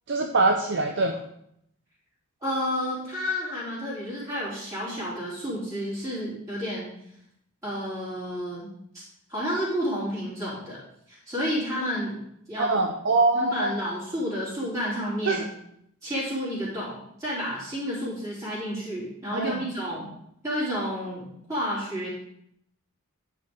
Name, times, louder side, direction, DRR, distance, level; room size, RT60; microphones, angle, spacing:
voice 1, 0.1-1.2 12.6-13.7 15.3-15.4 19.3-19.6, right 3 dB, 55° right, 3 dB, 0.6 m, -23 dB
voice 2, 2.4-6.9 7.6-8.7 9.3-10.8 11.1-12.2 12.5-12.7 13.3-15.4 16.0-20.1 20.4-22.1, equal, 15° right, -9 dB, 3.4 m, -30 dB
9.5 x 5.1 x 5.1 m, 0.74 s
head